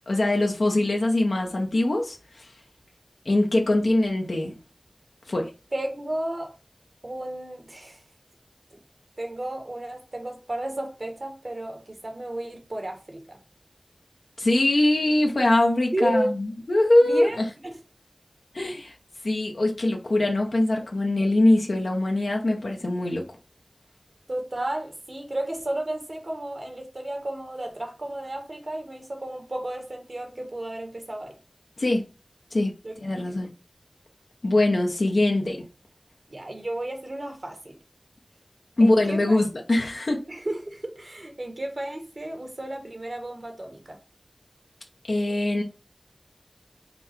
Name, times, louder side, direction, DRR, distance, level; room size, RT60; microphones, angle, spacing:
voice 1, 0.1-2.5 3.3-4.6 5.3-5.5 14.4-17.5 18.5-18.9 19.2-23.2 31.8-32.0 32.5-32.7 33.0-33.5 34.4-35.6 38.8-40.2 45.1-45.6, left 1 dB, 90° left, 0.8 m, -22 dB
voice 2, 5.7-6.5 7.0-8.0 8.7-8.8 9.2-13.4 15.9-16.3 17.0-17.4 17.6-17.8 24.3-31.3 32.8-32.9 33.3-33.5 36.3-37.8 38.8-39.4 40.3-44.0, right 1 dB, 60° right, 1.2 m, -33 dB
5.4 x 2.2 x 4.3 m
wide cardioid pair, 50°, 0 cm